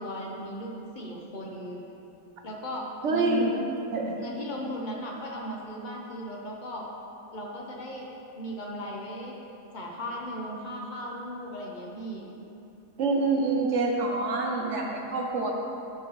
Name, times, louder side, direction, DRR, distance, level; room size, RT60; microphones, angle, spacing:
voice 1, 0.0-1.8 2.4-3.4 4.2-6.9 7.3-8.1 8.3-9.3 9.7-12.3, equal, 50° left, -2 dB, 0.6 m, -36 dB
voice 2, 3.0-3.6 3.9-4.1 13.0-15.5, right 3 dB, 65° right, 0 dB, 0.7 m, -26 dB
11.5 x 4.6 x 3.1 m, 2.8 s
omnidirectional pair, 1.8 m